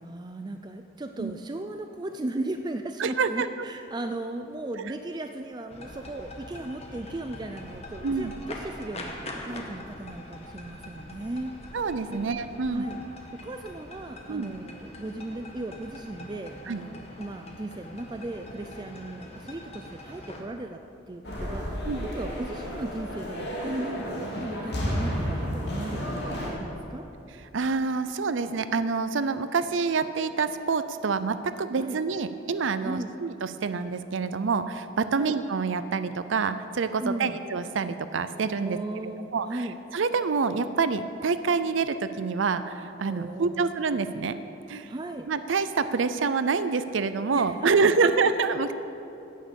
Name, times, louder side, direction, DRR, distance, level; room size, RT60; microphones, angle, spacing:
voice 1, 0.0-11.6 12.1-12.2 12.7-13.0 13.3-20.8 21.1-27.1 31.8-32.0 32.8-33.1 35.1-35.3 37.0-37.4 38.6-39.8 43.1-43.7 44.9-45.3 47.3-47.7 48.0-48.1, right 2 dB, 20° right, 6 dB, 0.4 m, -36 dB
voice 2, 3.0-3.5 8.0-8.3 11.7-12.9 14.3-14.5 16.7-16.8 21.9-22.1 27.5-38.8 39.3-39.5 39.9-44.4 44.7-44.9 45.3-48.7, right 4 dB, 75° right, 12 dB, 0.5 m, -27 dB
sound 1, 5.7-20.4, left 1 dB, 30° left, 1.3 m, -43 dB
sound 2, 21.2-26.5, equal, 60° left, 2.5 m, -32 dB
16.5 x 6.5 x 7.0 m, 2.8 s
head